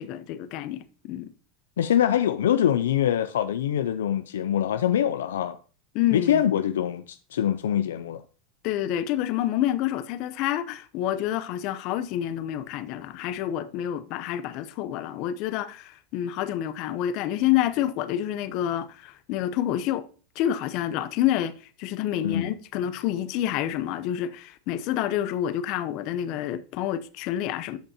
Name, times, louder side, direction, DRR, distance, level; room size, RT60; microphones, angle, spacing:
voice 1, 0.0-1.3 5.9-6.4 8.6-20.0 20.4-21.5 21.8-27.8, left 12 dB, 55° left, 0.7 m, -28 dB
voice 2, 1.8-5.6 6.1-8.2 22.2-22.5, left 10 dB, 85° left, 0.4 m, -24 dB
13.5 x 5.2 x 2.9 m
hypercardioid pair, 100°, 0 cm